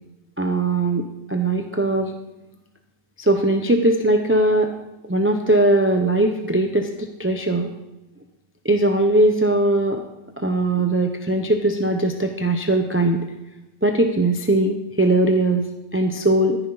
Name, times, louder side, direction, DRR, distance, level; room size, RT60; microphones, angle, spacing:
voice 1, 0.4-1.0 1.3-2.1 3.2-4.7 5.1-7.7 8.6-10.0 10.4-13.2 13.8-15.6 15.9-16.6, right 2 dB, 10° right, 4 dB, 0.6 m, -20 dB
13.5 x 10.5 x 4.0 m, 0.98 s
omnidirectional pair, 1.5 m